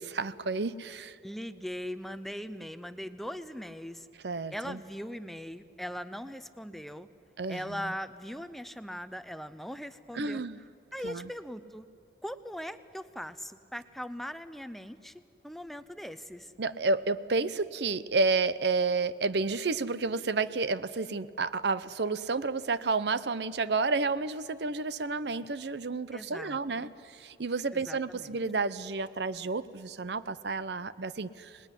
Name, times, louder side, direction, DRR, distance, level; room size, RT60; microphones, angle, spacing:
voice 1, 0.0-1.2 4.2-4.8 7.4-7.9 10.1-10.6 11.0-11.3 16.6-31.5, right 3 dB, 65° right, 15 dB, 0.7 m, -31 dB
voice 2, 1.2-4.1 4.5-7.1 7.5-10.4 10.9-11.9 12.2-16.5 26.1-26.9 27.7-28.4, equal, ahead, 12 dB, 0.6 m, -40 dB
25.5 x 20.0 x 9.9 m, 2.5 s
head